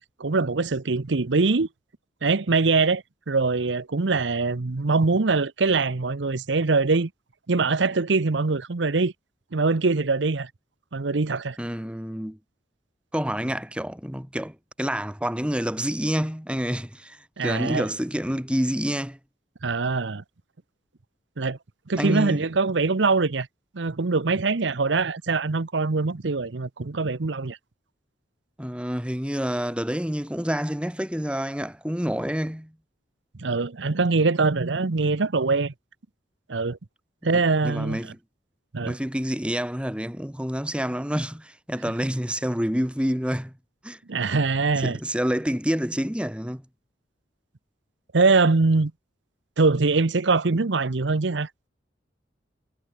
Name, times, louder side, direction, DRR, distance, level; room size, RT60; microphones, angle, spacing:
voice 1, 0.0-1.7 2.2-7.1 7.5-9.1 9.5-10.5 10.9-11.6 17.4-17.9 19.6-20.2 21.4-21.6 21.9-23.5 23.7-27.6 33.4-35.7 36.5-36.8 37.2-38.0 38.7-38.9 44.1-45.0 48.1-48.9 49.6-51.5, right 3 dB, 80° right, 0.8 m, -23 dB
voice 2, 11.6-12.4 13.1-19.2 22.0-22.5 28.6-32.7 37.2-38.2 38.8-43.5 43.8-44.0 44.8-46.6, equal, 5° right, 2.0 m, -28 dB
head